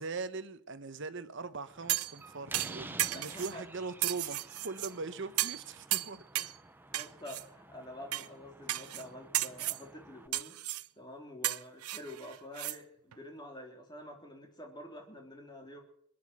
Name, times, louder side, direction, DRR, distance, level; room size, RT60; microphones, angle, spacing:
voice 1, 0.0-6.2, right 4 dB, 55° right, 1.0 m, -41 dB
Slam, 1.7-10.3, right 2 dB, 10° right, 0.9 m, -51 dB
sound 1, 1.9-2.2 2.5-3.5 4.0-4.9 5.4-5.6 5.9-6.6 6.9-7.4 8.1-8.3 8.7-9.0 9.3-9.8 10.3-10.9 11.4-12.8 13.1-13.2, right 16 dB, 80° right, 0.6 m, -34 dB
voice 2, 3.1-3.6 6.4-6.5 6.9-10.6 11.0-15.8, left 1 dB, 20° left, 3.5 m, -48 dB
21.5 x 10.5 x 6.2 m
head